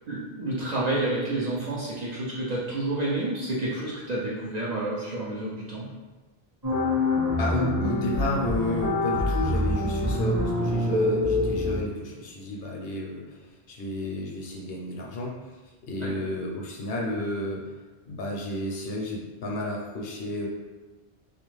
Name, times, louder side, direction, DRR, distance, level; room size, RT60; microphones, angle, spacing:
voice 1, 0.1-5.9 16.0-16.1, right 2 dB, 50° right, -6 dB, 0.5 m, -29 dB
sound 1, 6.6-11.8, left 1 dB, 20° right, 0.8 m, -25 dB
voice 2, 7.4-13.4 13.7-15.4 15.9-17.7 18.1-20.5, left 1 dB, 70° left, -1 dB, 0.7 m, -31 dB
2.4 x 2.3 x 3.1 m, 1.2 s
omnidirectional pair, 1.1 m